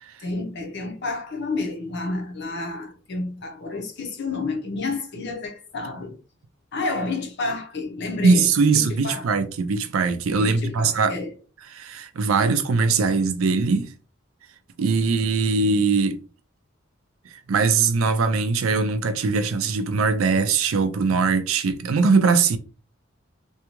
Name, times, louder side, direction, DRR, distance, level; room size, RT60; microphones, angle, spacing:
voice 1, 0.2-6.2 6.7-9.3 10.4-11.3, left 3 dB, 55° left, 0.7 m, -30 dB
voice 2, 8.2-11.1 11.7-13.9 14.8-16.2 17.5-22.6, right 4 dB, 80° right, 0.4 m, -21 dB
2.7 x 2.3 x 2.9 m
head